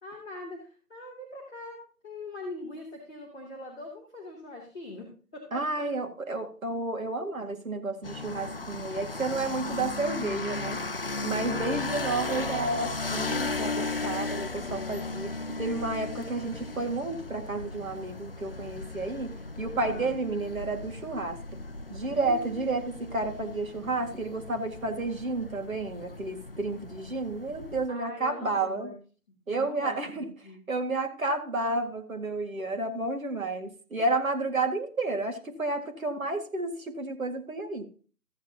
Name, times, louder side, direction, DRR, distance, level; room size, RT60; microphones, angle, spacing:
voice 1, 0.0-5.9 11.3-11.8 19.8-20.1 22.1-22.6 27.9-28.9 29.5-30.6, left 2 dB, 5° left, -14 dB, 0.9 m, -42 dB
voice 2, 5.5-10.8 11.2-15.3 15.6-21.4 21.9-28.9 29.5-30.3 30.7-37.8, right 2 dB, 60° right, 5 dB, 2.1 m, -31 dB
sound 1, 8.0-27.9, left 3 dB, 40° left, 0.6 m, -36 dB
14.5 x 8.7 x 2.9 m, 0.38 s
figure-of-eight pair, 155°, 46 cm